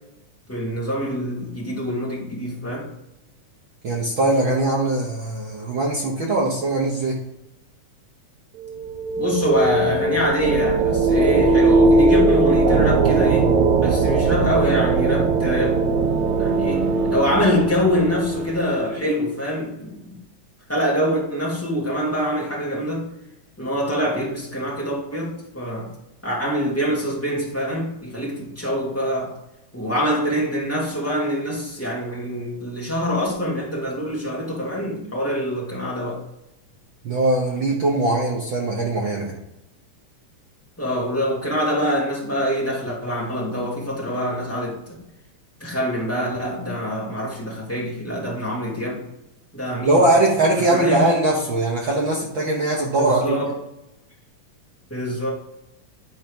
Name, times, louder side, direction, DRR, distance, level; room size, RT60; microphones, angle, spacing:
voice 1, 0.5-2.9 9.2-13.5 13.8-15.8 16.4-20.2 20.7-23.1 23.6-25.9 26.2-29.3 29.7-36.2 40.8-44.9 45.6-49.0 49.5-50.0 50.7-51.1 53.0-53.5 54.9-55.3, equal, 5° left, -5 dB, 1.8 m, -25 dB
voice 2, 3.8-7.2 37.0-39.3 49.8-53.4, right 2 dB, 55° right, -2 dB, 1.4 m, -21 dB
sound 1, 8.6-19.2, right 3 dB, 70° right, 2.2 m, -19 dB
10.5 x 4.5 x 5.3 m, 0.89 s
omnidirectional pair, 3.6 m